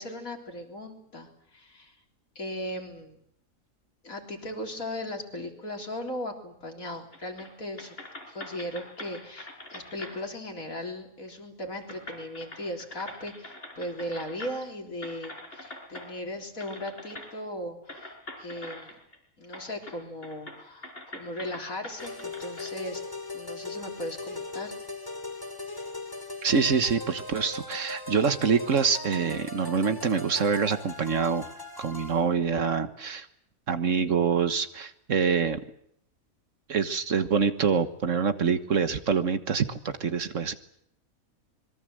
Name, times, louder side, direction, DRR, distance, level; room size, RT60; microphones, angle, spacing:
voice 1, 0.0-2.0 2.4-3.2 4.0-8.0 8.3-18.1 18.4-19.0 19.4-23.0 23.3-24.8, left 1 dB, 80° left, 2 dB, 4.1 m, -37 dB
sound 1, 7.1-7.5 7.8-10.2 11.3-11.4 11.8-14.7 15.0-16.1 16.6-17.3 17.9-19.2 19.5-20.0 20.2-22.7, left 1 dB, 45° left, 4.9 m, -43 dB
sound 2, 22.0-32.3, left 2 dB, 15° left, 2.5 m, -39 dB
voice 2, 26.4-31.4 31.8-33.3 33.7-35.6 36.7-40.5, right 6 dB, 65° right, 10 dB, 1.7 m, -25 dB
26.0 x 22.5 x 7.8 m, 0.72 s
omnidirectional pair, 1.5 m